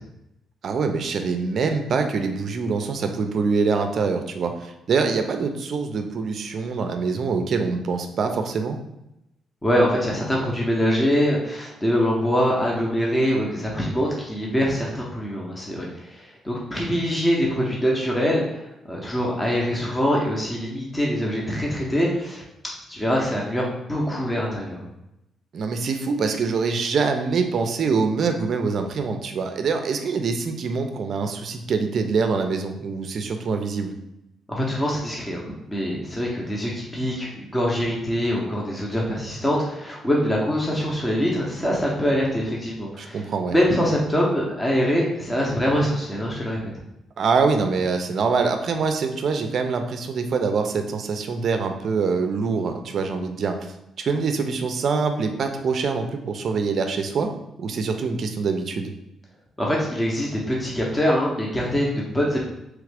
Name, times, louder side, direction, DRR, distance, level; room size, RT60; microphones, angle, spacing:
voice 1, 0.6-8.8 25.5-33.9 43.0-43.6 47.2-53.5 54.0-57.3 57.6-58.9, right 4 dB, 55° right, 6 dB, 0.4 m, -24 dB
voice 2, 9.6-22.4 22.9-24.8 34.5-46.7 59.6-62.4, equal, 15° left, -3 dB, 0.7 m, -24 dB
3.1 x 2.4 x 3.3 m, 0.88 s
cardioid pair, 90°, 0 cm